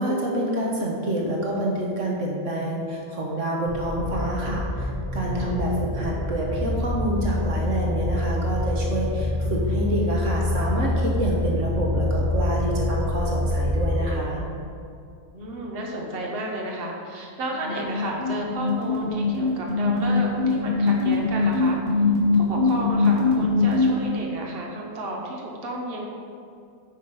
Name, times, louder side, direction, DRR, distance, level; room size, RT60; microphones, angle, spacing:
voice 1, 0.0-14.4, right 1 dB, 70° right, -2 dB, 1.4 m, -27 dB
sound 1, 3.6-14.1, left 1 dB, 20° right, 1.0 m, -26 dB
voice 2, 15.3-22.0 22.3-26.1, right 1 dB, 45° right, -1 dB, 1.4 m, -32 dB
sound 2, 17.5-23.9, left 2 dB, 25° left, 2.1 m, -22 dB
9.6 x 5.1 x 5.4 m, 2.5 s
omnidirectional pair, 1.4 m